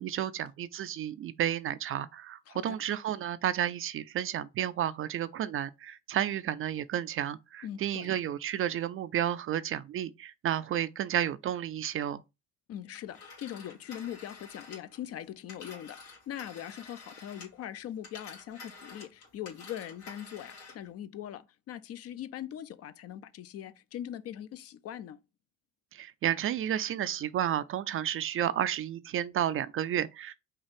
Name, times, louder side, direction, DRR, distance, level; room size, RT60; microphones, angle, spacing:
voice 1, 0.0-12.2 25.9-30.3, right 11 dB, 35° right, 0.4 m, -32 dB
voice 2, 7.6-8.1 12.7-25.2, left 11 dB, 40° left, 0.5 m, -41 dB
Telephone, 12.9-17.7 18.0-20.9, left 4 dB, 80° left, 2.1 m, -49 dB
5.5 x 2.4 x 3.4 m
hypercardioid pair, 60°, 37 cm